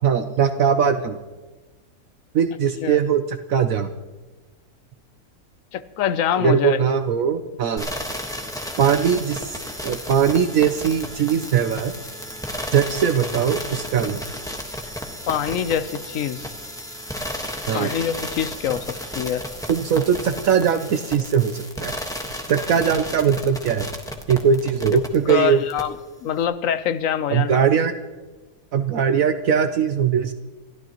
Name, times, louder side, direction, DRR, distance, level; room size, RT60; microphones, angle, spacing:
voice 1, 0.0-1.2 2.3-3.9 6.4-7.9 8.8-9.4 9.8-11.9 12.7-14.2 17.7-17.9 19.7-22.0 22.5-23.9 24.3-25.6 27.3-27.9 28.7-30.3, right 7 dB, 65° right, 8 dB, 1.0 m, -20 dB
voice 2, 5.7-6.8 15.3-16.5 17.7-19.4 25.3-25.9 26.2-27.6, left 9 dB, 65° left, 13 dB, 1.0 m, -24 dB
sound 1, 7.8-25.3 25.7-25.8, equal, ahead, 1.2 m, -33 dB
29.0 x 13.5 x 3.0 m, 1.3 s
omnidirectional pair, 1.7 m